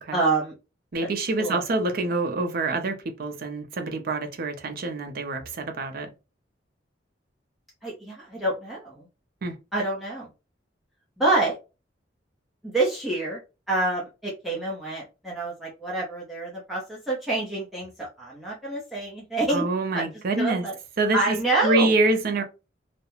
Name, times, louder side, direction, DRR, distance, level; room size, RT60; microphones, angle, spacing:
voice 1, 0.1-0.5 1.0-1.1 1.4-1.6 7.8-9.1 9.7-10.3 11.2-11.6 12.6-13.4 13.7-19.6 19.9-20.1 20.4-20.7 21.1-21.9, right 2 dB, ahead, 0.6 m, -27 dB
voice 2, 0.9-6.1 9.4-9.6 19.5-20.6 21.0-21.4 21.6-22.4, right 2 dB, 55° right, 0.5 m, -26 dB
2.4 x 2.1 x 2.9 m
head